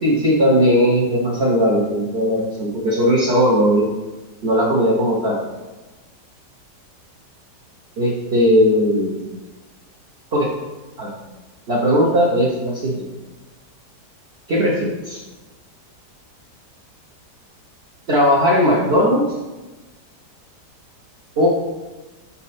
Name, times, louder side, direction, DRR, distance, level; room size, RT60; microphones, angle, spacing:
voice 1, 0.0-3.9 4.4-5.4 8.0-9.2 10.3-10.5 11.0-11.1 11.7-13.0 14.5-15.2 18.1-19.3 21.4-21.5, equal, 45° right, -5 dB, 1.0 m, -17 dB
6.0 x 4.2 x 4.1 m, 1.2 s
omnidirectional pair, 1.8 m